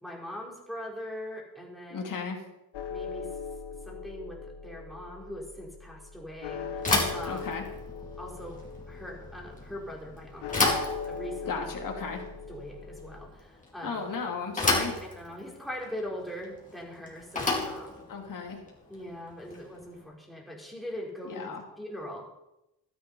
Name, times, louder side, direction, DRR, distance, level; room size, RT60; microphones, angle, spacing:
voice 1, 0.0-2.2 2.9-3.3 3.9-7.5 8.2-8.6 8.9-10.8 11.1-11.7 12.5-14.1 15.0-18.1 18.9-22.2, equal, ahead, -2 dB, 4.2 m, -41 dB
voice 2, 1.9-2.4 7.3-7.6 11.5-12.2 13.8-15.0 18.1-18.6 21.2-21.6, left 5 dB, 50° left, 1 dB, 2.7 m, -35 dB
sound 1, 2.7-13.3, left 5 dB, 75° left, 1.5 m, -40 dB
Bicycle / Thump thud, 6.8-19.9, left 2 dB, 20° left, 4.2 m, -33 dB
12.0 x 10.5 x 5.5 m, 0.91 s
cardioid pair, 75°, 41 cm